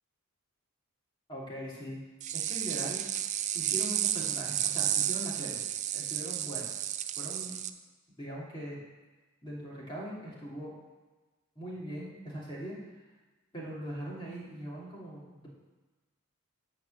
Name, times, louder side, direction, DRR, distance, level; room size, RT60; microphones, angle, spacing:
voice 1, 1.3-2.0 2.3-3.0 3.5-5.6 5.9-6.7 7.2-7.6 8.2-8.8 9.4-10.8 11.6-12.8 13.5-15.5, equal, 20° left, -5 dB, 2.5 m, -41 dB
sound 1, 2.2-7.7, right 11 dB, 30° right, 0.3 m, -32 dB
9.6 x 4.3 x 7.5 m, 1.2 s
head